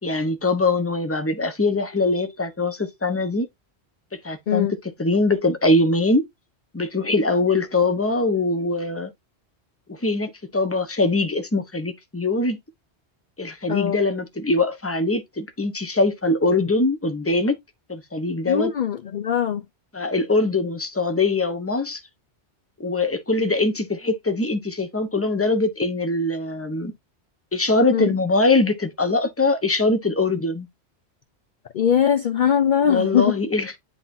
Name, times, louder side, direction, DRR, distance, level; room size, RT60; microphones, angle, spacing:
voice 1, 0.0-3.5 4.2-4.7 5.0-6.3 6.7-9.1 9.9-12.6 13.4-17.6 17.9-18.7 19.9-22.0 22.8-26.9 27.5-30.7 32.9-33.8, left 2 dB, 15° left, 1.0 m, -22 dB
voice 2, 18.5-19.6 27.9-28.1 31.7-33.3, left 8 dB, 50° left, 0.7 m, -21 dB
10.0 x 3.9 x 2.7 m
omnidirectional pair, 1.1 m